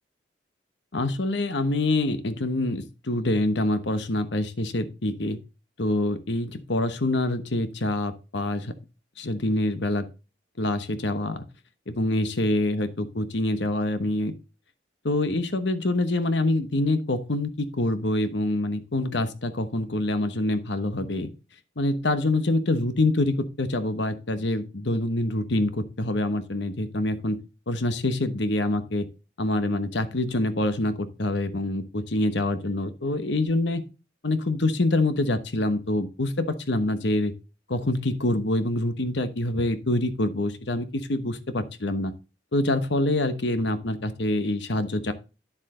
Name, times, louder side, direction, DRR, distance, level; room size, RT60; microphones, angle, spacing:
voice 1, 0.9-5.4 5.8-8.7 9.2-10.1 10.6-11.4 11.9-14.3 15.0-21.3 21.8-27.4 27.7-29.1 29.4-33.8 34.2-37.3 37.7-42.1 42.5-45.1, left 2 dB, 65° left, 11 dB, 1.1 m, -26 dB
10.0 x 7.2 x 3.8 m, 0.31 s
head